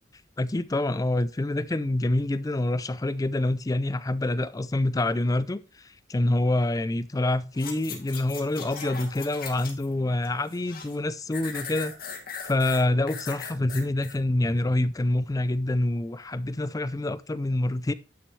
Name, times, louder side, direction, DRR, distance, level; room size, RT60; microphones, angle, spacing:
voice 1, 0.4-11.9 12.4-17.9, left 1 dB, 20° left, 0.4 m, -26 dB
sound 1, 7.5-9.9 10.2-11.0 11.3-14.2 14.6-14.7, left 6 dB, 55° left, 2.1 m, -39 dB
11.5 x 6.1 x 3.2 m
head